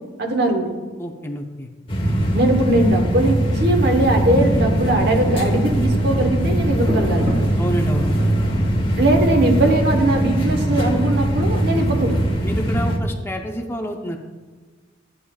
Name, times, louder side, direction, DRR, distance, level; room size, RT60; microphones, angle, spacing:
voice 1, 0.2-0.7 2.3-7.3 9.0-12.2, right 1 dB, 60° right, 3 dB, 1.1 m, -20 dB
voice 2, 1.0-1.7 7.6-8.1 12.4-14.2, equal, 15° left, 3 dB, 0.6 m, -28 dB
sound 1, 1.9-13.0, right 1 dB, 30° left, 1.1 m, -21 dB
Rain, 3.4-10.5, equal, 75° right, 1.8 m, -32 dB
13.0 x 8.8 x 2.3 m, 1.4 s
head